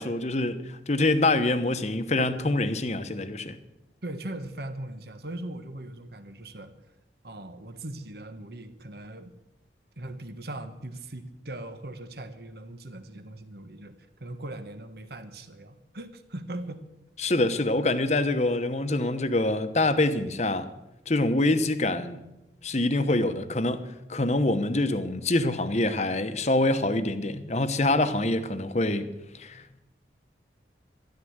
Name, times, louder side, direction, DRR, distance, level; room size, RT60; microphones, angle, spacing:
voice 1, 0.0-3.5 17.2-20.7 21.1-22.2 22.6-29.1 29.3-29.8, left 2 dB, 40° left, 1.0 m, -25 dB
voice 2, 4.0-6.8 7.2-9.3 10.0-13.9 14.2-16.8, right 1 dB, 60° right, 1.3 m, -39 dB
13.0 x 12.0 x 8.0 m
head